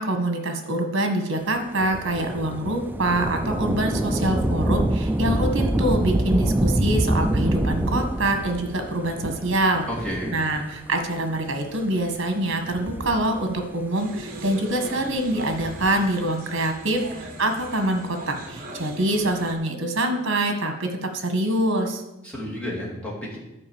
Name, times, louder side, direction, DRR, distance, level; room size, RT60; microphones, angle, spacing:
voice 1, 0.0-9.9 10.3-22.0, right 1 dB, 60° right, 5 dB, 1.6 m, -25 dB
Thunder / Rain, 1.8-10.8 11.5-11.6 12.5-13.8 15.3-16.1, right 1 dB, 10° right, 0.3 m, -25 dB
voice 2, 9.9-10.4 22.2-23.4, equal, 5° left, -5 dB, 2.6 m, -31 dB
sound 1, 13.9-19.5, right 1 dB, 40° right, 1.2 m, -40 dB
11.0 x 4.9 x 7.2 m, 0.95 s
head